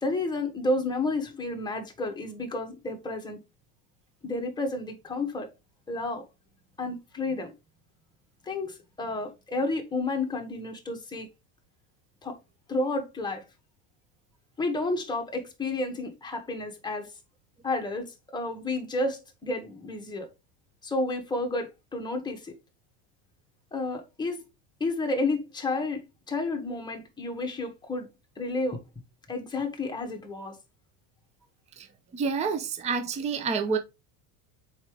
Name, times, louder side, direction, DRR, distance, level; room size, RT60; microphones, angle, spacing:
voice 1, 0.0-3.4 4.2-5.5 5.9-6.3 6.8-7.5 8.4-11.3 12.2-12.4 12.7-13.4 14.6-17.1 17.6-20.3 20.8-22.6 23.7-24.4 24.8-28.1 28.4-28.8 29.3-30.6, left 2 dB, 10° left, 1.6 m, -31 dB
voice 2, 32.1-33.8, right 5 dB, 15° right, 0.6 m, -28 dB
7.1 x 4.9 x 3.2 m
supercardioid pair, 150°, 48 cm